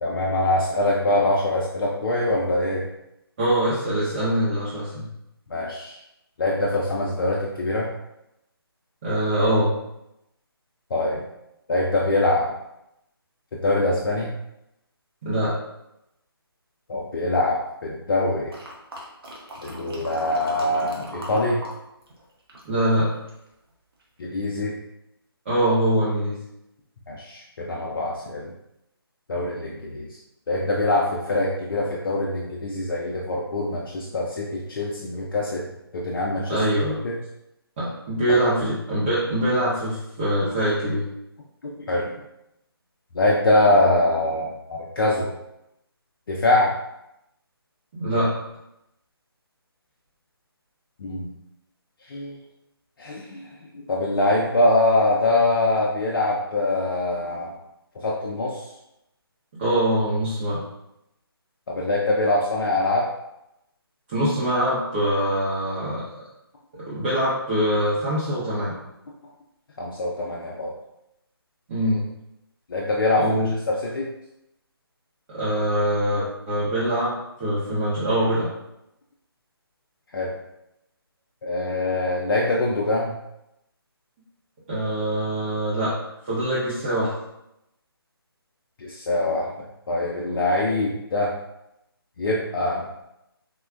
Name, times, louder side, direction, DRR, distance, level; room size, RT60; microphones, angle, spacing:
voice 1, 0.0-2.9 5.5-6.0 6.4-7.9 10.9-11.2 11.7-12.5 13.6-14.3 16.9-18.5 19.6-21.6 24.2-24.7 27.1-28.5 29.3-30.2 30.5-35.6 35.9-36.6 37.0-37.2 38.3-38.4 41.6-42.1 43.1-45.3 46.3-46.7 51.0-51.3 52.1-52.4 53.0-53.5 53.7-57.6 58.0-58.6 61.7-63.1 69.8-70.7 72.7-73.3 73.7-74.1 80.1-80.3 81.4-83.2 88.8-89.5 89.9-91.3 92.2-92.8, left 2 dB, 60° left, -4 dB, 0.5 m, -23 dB
voice 2, 3.4-5.1 9.0-9.7 15.2-15.6 22.6-23.1 25.4-26.4 36.5-37.0 37.8-41.1 47.9-48.3 59.5-60.6 64.1-66.0 66.9-68.7 71.7-72.0 73.2-73.5 75.3-78.5 84.7-86.0 86.3-87.1, right 1 dB, 30° right, -10 dB, 0.8 m, -23 dB
sound 1, 18.5-21.8 22.0-23.5 24.0-24.1, equal, 65° right, 0.9 m, -39 dB
3.6 x 2.1 x 2.4 m, 0.86 s
figure-of-eight pair, 150°, 13 cm